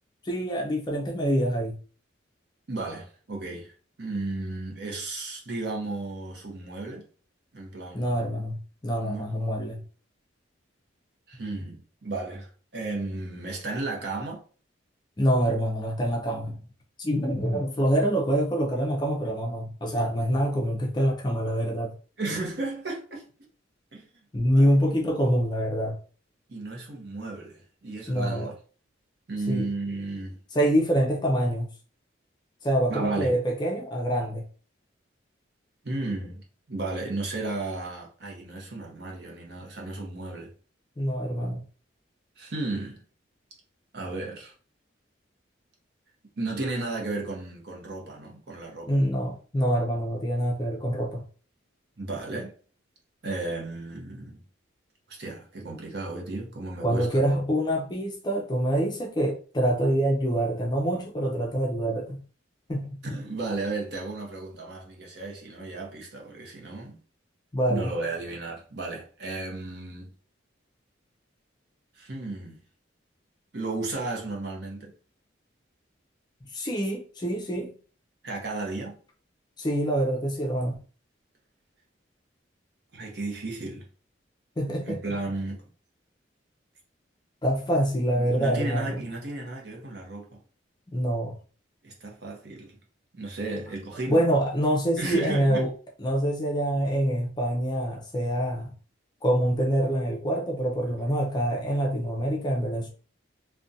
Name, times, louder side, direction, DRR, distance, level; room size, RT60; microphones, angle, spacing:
voice 1, 0.2-1.8 7.9-8.6 8.8-9.8 15.2-16.6 17.0-21.9 24.3-26.0 28.1-28.5 29.5-29.7 30.5-31.7 32.6-34.4 41.0-41.6 48.9-51.2 56.8-62.2 62.7-63.2 67.5-68.0 76.5-77.7 79.6-80.8 84.6-85.2 87.4-89.0 90.9-91.3 94.1-95.7 96.0-98.7 99.2-102.9, equal, 20° left, 0.4 m, -25 dB
voice 2, 2.7-3.7 4.0-7.1 7.5-8.3 9.0-9.3 11.3-14.4 22.2-23.2 23.9-24.1 24.5-24.7 26.5-28.5 29.3-30.4 32.9-33.3 35.8-36.4 36.7-40.5 42.4-43.0 43.9-44.5 46.4-49.0 52.0-52.5 53.2-54.4 55.1-57.4 63.0-67.0 67.7-70.1 72.0-72.6 73.5-74.9 78.2-79.0 82.9-83.8 84.8-85.6 88.1-90.4 91.8-92.8 93.1-94.2 95.0-95.6, right 2 dB, 55° right, 0.7 m, -34 dB
2.4 x 2.2 x 2.6 m
head